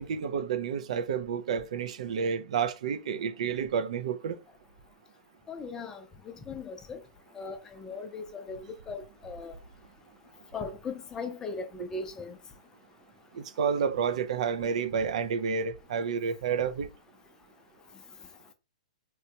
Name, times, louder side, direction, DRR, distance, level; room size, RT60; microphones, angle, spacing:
voice 1, 0.1-4.4 13.3-16.9, right 6 dB, 65° right, 0.4 m, -30 dB
voice 2, 5.5-6.0 6.5-7.0 7.4-7.6 7.8-8.6 8.9-9.5 10.5-12.4, left 4 dB, 15° left, 0.4 m, -38 dB
3.0 x 2.2 x 2.7 m
hypercardioid pair, 140°, 4 cm